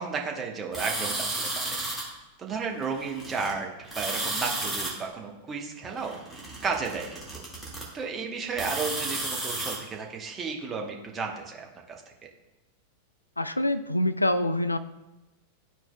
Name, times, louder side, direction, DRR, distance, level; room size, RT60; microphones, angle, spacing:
voice 1, 0.0-1.8 2.4-6.2 6.6-7.4 7.9-12.0, right 5 dB, 20° right, 1 dB, 1.0 m, -33 dB
sound 1, 0.7-2.0 2.8-3.5 3.8-4.9 5.8-7.8 8.5-9.8, right 2 dB, 5° left, 1.9 m, -33 dB
voice 2, 13.4-14.8, left 1 dB, 85° left, 11 dB, 0.3 m, -25 dB
12.0 x 4.5 x 2.2 m, 1.0 s
figure-of-eight pair, 90°, 0 cm